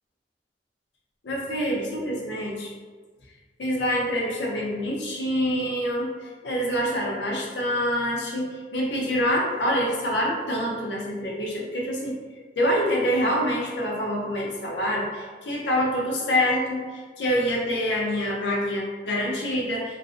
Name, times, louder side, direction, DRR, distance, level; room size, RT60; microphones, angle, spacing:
voice 1, 1.2-2.7 3.6-12.2 12.6-20.0, equal, 80° left, -2 dB, 0.6 m, -26 dB
2.4 x 2.0 x 2.5 m, 1.4 s
head